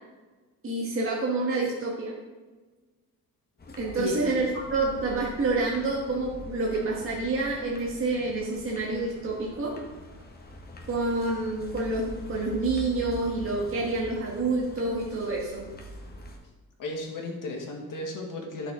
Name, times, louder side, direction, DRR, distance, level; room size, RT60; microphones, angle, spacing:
voice 1, 0.6-2.1 3.8-9.7 10.9-15.7, right 3 dB, 35° right, -4 dB, 1.6 m, -28 dB
sound 1, 3.6-16.4, left 1 dB, 25° left, 1.2 m, -44 dB
voice 2, 16.8-18.7, left 3 dB, 65° left, 0 dB, 2.0 m, -34 dB
11.5 x 6.3 x 3.8 m, 1.3 s
cardioid pair, 150°, 35 cm